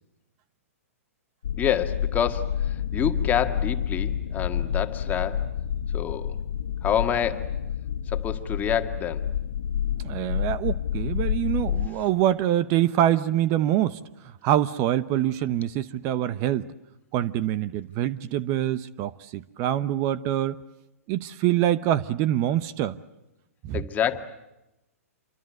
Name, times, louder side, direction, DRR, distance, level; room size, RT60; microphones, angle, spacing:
sound 1, 1.4-11.9, left 9 dB, 70° left, 1.2 m, -29 dB
voice 1, 1.6-5.5 5.9-6.4 6.8-7.6 8.1-9.3 23.7-24.2, left 8 dB, 20° left, 7 dB, 2.0 m, -27 dB
voice 2, 10.0-14.0 14.4-16.7 17.1-20.6 21.1-23.0 23.6-23.8, right 12 dB, 35° right, 15 dB, 0.9 m, -25 dB
28.0 x 24.5 x 7.9 m, 0.94 s
hypercardioid pair, 125°, 8 cm